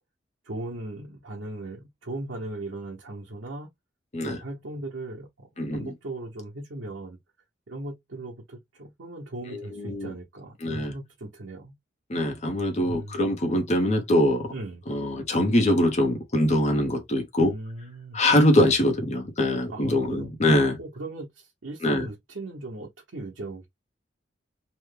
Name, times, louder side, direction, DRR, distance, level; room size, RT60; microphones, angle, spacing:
voice 1, 0.4-3.7 4.2-5.5 5.7-7.2 7.7-11.7 12.8-13.2 14.5-14.8 17.4-18.2 19.7-20.3 20.8-23.7, right 2 dB, 90° right, 0.9 m, -38 dB
voice 2, 5.6-5.9 9.5-10.1 10.6-10.9 12.1-14.5 14.9-17.5 18.1-20.8 21.8-22.1, left 1 dB, 35° left, 0.8 m, -23 dB
3.0 x 2.1 x 3.2 m
head